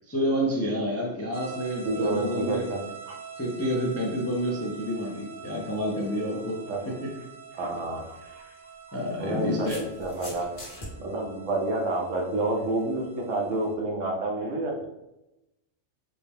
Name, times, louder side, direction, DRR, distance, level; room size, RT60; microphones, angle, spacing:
voice 1, 0.1-2.6 3.4-6.6 6.9-7.0 8.9-9.8, equal, 25° left, -2 dB, 0.3 m, -29 dB
sound 1, 1.3-13.8, right 6 dB, 45° right, 0.4 m, -45 dB
voice 2, 1.8-3.2 6.7-6.8 7.5-8.5 9.2-10.5 11.0-14.9, right 2 dB, 85° right, 0 dB, 1.2 m, -29 dB
sound 2, 7.7-7.9 9.0-10.9, left 1 dB, 50° left, 1.5 m, -42 dB
4.5 x 2.1 x 3.5 m, 0.93 s
omnidirectional pair, 1.3 m